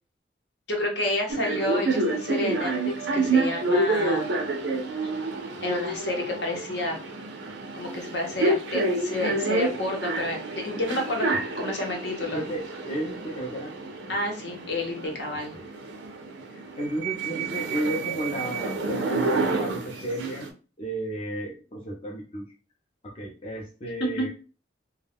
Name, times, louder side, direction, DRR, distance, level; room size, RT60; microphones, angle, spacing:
voice 1, 0.7-4.3 4.9-5.1 5.6-6.9 7.7-12.4 14.1-15.5, left 2 dB, 65° left, 1 dB, 0.8 m, -30 dB
sound 1, 1.3-20.5, right 2 dB, 75° right, 0.5 m, -29 dB
voice 2, 12.3-13.7 15.5-15.7 16.5-20.5 20.8-22.5 23.0-24.3, right 1 dB, 30° left, -2 dB, 0.5 m, -33 dB
2.3 x 2.2 x 3.4 m, 0.35 s
head